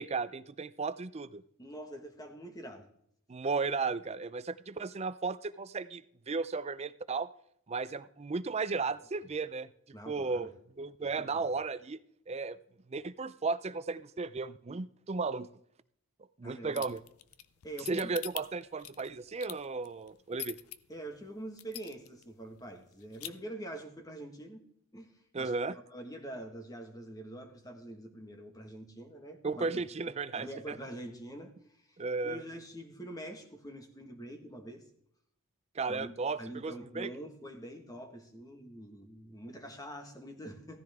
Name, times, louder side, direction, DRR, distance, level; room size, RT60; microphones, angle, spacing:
voice 1, 0.0-1.4 3.3-7.3 7.7-9.7 10.1-10.5 10.8-12.0 12.3-12.6 12.9-15.5 16.4-17.0 17.9-20.6 25.3-25.8 29.4-30.8 32.0-32.4 35.7-37.1, right 4 dB, 30° right, 14 dB, 0.4 m, -35 dB
voice 2, 1.6-2.9 9.9-10.5 11.0-11.5 16.4-16.9 17.6-18.1 20.9-24.6 24.9-32.0 32.2-34.8 35.9-40.8, right 1 dB, 15° left, 5 dB, 1.5 m, -45 dB
sound 1, 16.7-20.8 21.2-21.3 21.6-22.2 22.6-22.7 22.9-23.3, left 13 dB, 80° left, 0.6 m, -42 dB
15.0 x 14.0 x 3.6 m, 0.70 s
head